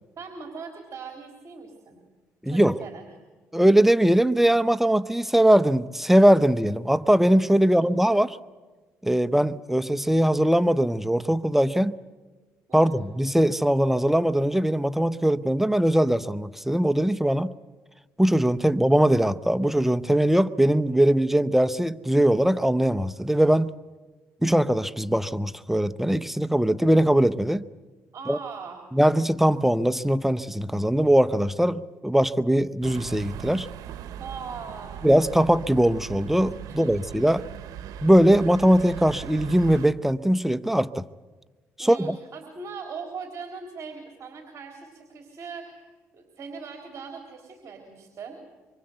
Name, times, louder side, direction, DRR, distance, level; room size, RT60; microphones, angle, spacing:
voice 1, 0.2-2.0 2.5-3.0 7.6-8.0 12.7-13.0 18.6-18.8 28.1-28.8 34.2-35.1 36.7-36.9 41.8-48.4, right 5 dB, 50° right, 3.7 m, -40 dB
voice 2, 2.4-2.8 3.5-8.4 9.0-12.0 12.7-17.5 18.2-23.7 24.4-27.6 28.3-28.4 28.9-33.7 35.0-37.4 38.0-41.0 41.8-42.2, right 1 dB, 5° right, 0.8 m, -21 dB
sound 1, 32.8-39.9, right 10 dB, 75° right, 1.0 m, -39 dB
25.0 x 24.5 x 8.0 m
supercardioid pair, 70°, 6 cm